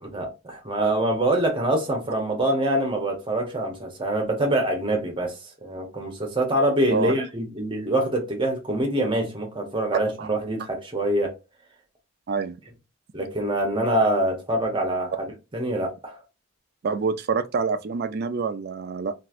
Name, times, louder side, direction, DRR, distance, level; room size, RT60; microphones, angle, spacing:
voice 1, 0.0-11.3 13.1-15.3 15.5-16.2, right 1 dB, 25° right, 0.9 m, -25 dB
voice 2, 16.8-19.1, right 5 dB, 45° right, 0.4 m, -26 dB
3.0 x 2.5 x 2.5 m
head